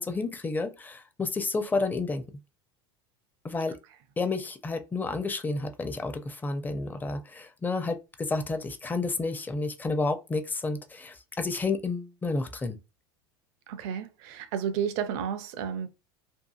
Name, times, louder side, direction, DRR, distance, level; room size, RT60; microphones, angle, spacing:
voice 1, 0.0-2.2 3.4-3.8 4.2-12.8, left 3 dB, 15° left, 0.5 m, -30 dB
voice 2, 13.7-15.9, right 8 dB, 60° right, 0.5 m, -32 dB
2.7 x 2.4 x 2.3 m
hypercardioid pair, 90°, 13 cm